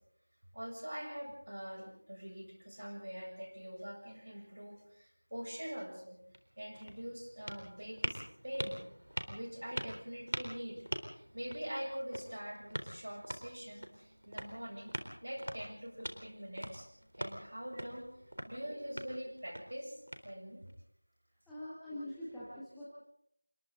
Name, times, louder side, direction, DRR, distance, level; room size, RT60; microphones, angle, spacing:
voice 1, 0.5-6.2 6.6-8.8 9.3-10.8 11.1-14.9 15.2-16.9 17.1-18.1 18.5-20.7, equal, 40° right, 1 dB, 7.3 m, -44 dB
sound 1, 6.2-20.7, equal, 65° right, 3.9 m, -45 dB
voice 2, 21.5-22.9, left 1 dB, ahead, -12 dB, 1.2 m, -44 dB
28.0 x 23.0 x 4.0 m, 0.72 s
figure-of-eight pair, 175°, 0 cm